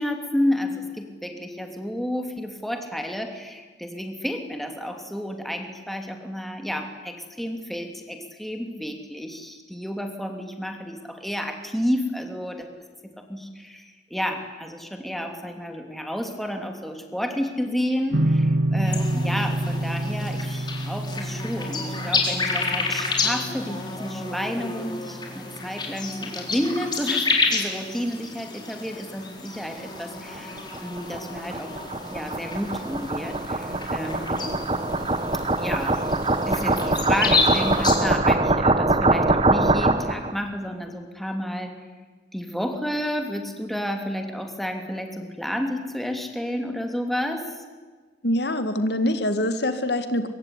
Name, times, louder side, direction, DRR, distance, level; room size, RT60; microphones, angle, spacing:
voice 1, 0.0-12.7 13.2-27.2 27.5-31.7 32.1-34.5 35.6-36.0 36.4-41.7 42.3-47.6, equal, ahead, 4 dB, 2.8 m, -31 dB
sound 1, 18.1-25.3, right 1 dB, 85° right, 1.1 m, -28 dB
sound 2, 18.8-37.9, left 4 dB, 25° left, 4.2 m, -30 dB
sound 3, 30.3-40.3, right 2 dB, 30° right, 1.2 m, -23 dB
voice 2, 48.2-50.3, left 1 dB, 65° left, 10 dB, 1.9 m, -24 dB
24.0 x 23.5 x 10.0 m, 1.4 s
head